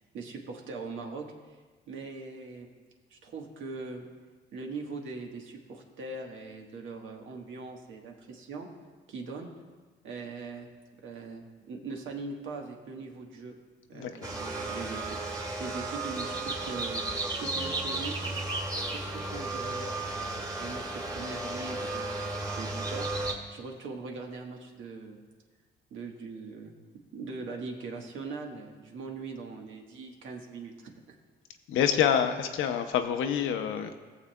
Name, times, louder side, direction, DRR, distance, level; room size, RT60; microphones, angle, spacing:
voice 1, 0.0-1.6 1.9-2.7 3.1-4.0 4.5-8.7 9.1-9.5 10.0-10.7 11.0-13.5 13.9-18.2 18.8-23.1 23.5-25.2 25.9-26.7 27.1-31.2, right 4 dB, 80° right, 2 dB, 1.3 m, -41 dB
sound 1, 14.2-23.3, right 2 dB, 20° right, 1.6 m, -34 dB
voice 2, 31.7-33.9, left 8 dB, 85° left, 7 dB, 0.7 m, -27 dB
18.5 x 7.2 x 2.2 m, 1.4 s
cardioid pair, 90°, 20 cm